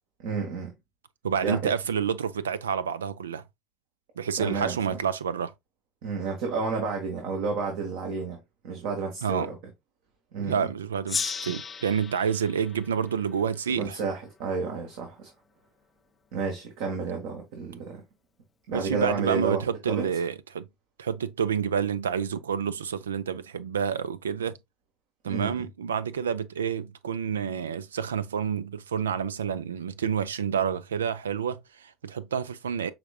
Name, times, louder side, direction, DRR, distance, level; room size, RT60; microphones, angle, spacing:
voice 1, 0.2-0.7 1.4-1.7 4.4-5.0 6.0-8.4 8.6-9.6 10.3-10.7 13.8-15.3 16.3-18.0 18.7-19.6 19.9-20.1 25.2-25.5, right 4 dB, 65° right, 1.3 m, -31 dB
voice 2, 1.2-3.4 4.2-5.5 9.2-9.5 10.4-14.0 18.7-20.7 21.0-24.5 25.2-32.9, right 7 dB, 85° right, 0.4 m, -29 dB
Gong, 11.1-14.2, left 5 dB, 30° left, 0.4 m, -36 dB
5.8 x 3.6 x 2.3 m
hypercardioid pair, 70°, 0 cm